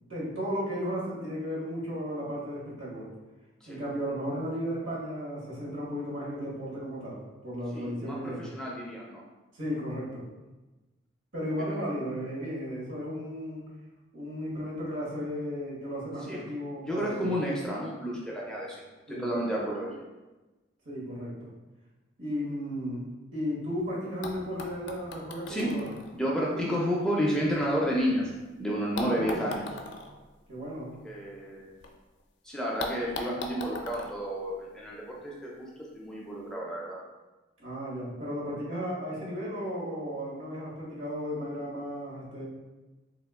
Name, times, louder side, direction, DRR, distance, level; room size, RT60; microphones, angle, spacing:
voice 1, 0.1-3.1 3.7-8.5 9.5-10.2 11.3-13.7 14.1-17.3 19.1-19.2 20.8-21.5 22.2-25.9 26.5-26.6 29.0-29.5 30.5-30.9 37.6-42.4, equal, 75° right, -6 dB, 1.3 m, -35 dB
voice 2, 7.7-9.2 16.3-16.4 16.9-19.9 25.5-25.7 26.1-28.3 28.6-29.7 31.0-31.7 32.4-37.0, equal, 5° left, -4 dB, 0.4 m, -31 dB
sound 1, 23.8-23.9 24.2-28.3 29.0-31.9 32.2-32.3 32.8-35.2 36.2-36.3, left 2 dB, 65° left, 0.4 m, -41 dB
2.8 x 2.7 x 3.4 m, 1.2 s
head